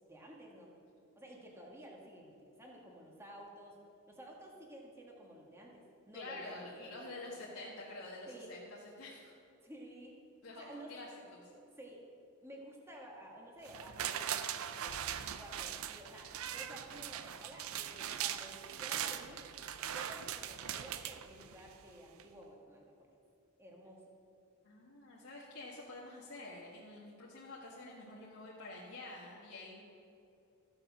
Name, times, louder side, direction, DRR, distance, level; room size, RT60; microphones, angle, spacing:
voice 1, 0.0-0.7 1.1-3.8 4.1-7.0 8.3-8.5 9.6-10.2 10.6-11.0 11.8-12.1 12.4-19.5 19.8-23.1 23.6-24.0, right 1 dB, 10° right, -1 dB, 1.6 m, -53 dB
voice 2, 6.1-8.6 9.0-9.3 10.4-11.5 24.6-29.8, left 2 dB, 70° left, -6 dB, 1.7 m, -48 dB
sound 1, 13.6-21.8 22.2-22.3, right 9 dB, 70° right, 0.5 m, -40 dB
14.0 x 7.9 x 6.1 m, 2.7 s
head